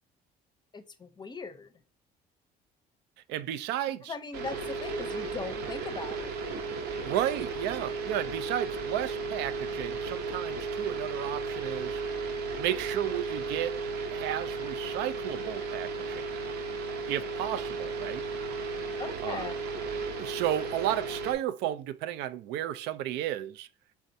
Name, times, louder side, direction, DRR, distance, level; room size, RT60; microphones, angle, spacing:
voice 1, 0.7-1.7 4.1-6.3 19.0-19.5, left 4 dB, 25° left, 0.6 m, -39 dB
voice 2, 3.3-4.1 7.0-12.0 12.6-13.8 14.1-16.3 17.1-18.2 19.2-19.5 20.2-23.7, right 12 dB, 90° right, 0.4 m, -33 dB
sound 1, 4.3-21.3, right 4 dB, 75° right, 0.8 m, -35 dB
4.2 x 3.5 x 2.6 m
cardioid pair, 110°, 17 cm